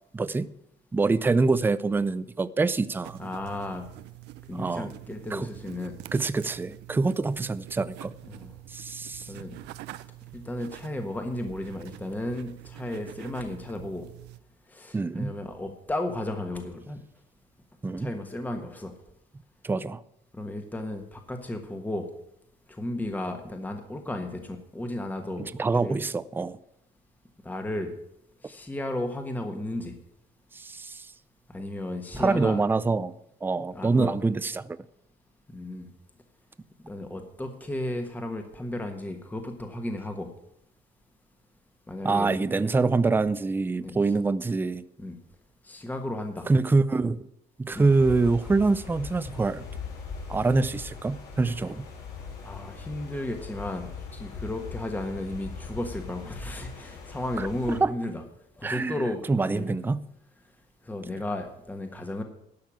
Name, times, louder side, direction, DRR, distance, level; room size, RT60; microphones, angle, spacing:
voice 1, 0.1-0.5 0.9-3.2 4.5-4.9 5.3-5.5 6.1-8.1 8.7-9.3 14.9-15.4 17.8-18.1 19.6-20.0 25.4-26.6 30.5-31.1 32.2-33.1 33.4-34.8 42.0-44.8 46.5-47.3 47.6-49.6 50.3-51.9 57.4-57.5 57.8-57.9 58.6-59.0 59.3-60.0, right 3 dB, 10° right, 16 dB, 0.4 m, -25 dB
sound 1, 3.0-14.4, right 16 dB, 90° right, 0.6 m, -45 dB
voice 2, 3.2-3.9 4.5-6.0 8.3-8.5 9.3-9.6 10.3-14.1 14.7-17.0 18.0-18.9 20.3-22.1 22.7-25.5 25.8-26.0 27.4-27.9 28.4-30.0 31.5-32.6 33.7-34.1 35.5-35.9 36.8-40.3 41.9-42.3 43.8-44.0 45.0-45.1 45.6-46.5 47.7-47.9 52.4-58.2 58.6-59.8 60.8-62.2, left 1 dB, 10° left, 5 dB, 1.3 m, -34 dB
sound 2, 47.7-57.8, left 5 dB, 75° left, 4.1 m, -40 dB
12.0 x 5.7 x 8.7 m, 0.77 s
cardioid pair, 110°, 17 cm